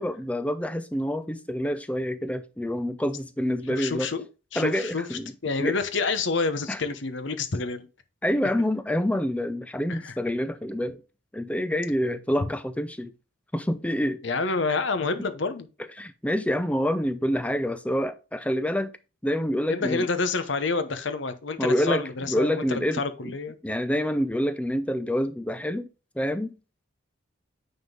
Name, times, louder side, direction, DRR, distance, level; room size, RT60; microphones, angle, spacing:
voice 1, 0.0-4.1 4.5-5.8 6.7-6.8 8.2-11.0 11.3-13.1 13.5-14.2 15.8-18.9 19.2-20.1 21.6-23.4 23.6-25.9 26.2-26.5, equal, 5° left, 0.5 m, -27 dB
voice 2, 3.7-4.2 4.5-7.9 9.9-10.1 14.2-15.7 19.7-23.5, left 4 dB, 65° left, 0.9 m, -28 dB
9.1 x 3.8 x 3.7 m
head